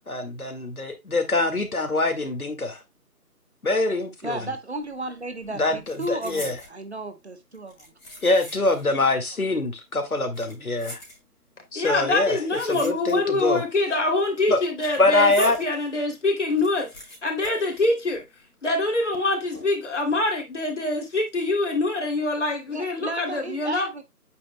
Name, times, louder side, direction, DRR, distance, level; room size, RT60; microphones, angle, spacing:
voice 1, 0.1-2.8 3.6-4.4 5.5-6.5 8.2-11.0 11.7-12.4 12.6-13.6 14.5-14.6 15.0-15.6, left 2 dB, 65° left, 2.1 m, -24 dB
voice 2, 4.2-7.9 8.7-8.8 22.7-24.0, right 1 dB, 45° right, 1.3 m, -34 dB
sound 1, 4.8-5.1 5.4-6.8 7.5-8.9 9.2-9.3 10.1-11.6 12.2-13.4 13.7-15.7 16.1-16.2 16.4-18.5 18.7-18.8 19.5-20.0 20.4-20.6, left 1 dB, 5° left, 1.5 m, -43 dB
voice 3, 11.7-16.9 17.2-18.2 18.6-23.9, left 2 dB, 50° left, 3.1 m, -25 dB
8.5 x 7.1 x 2.2 m
figure-of-eight pair, 155°, 46 cm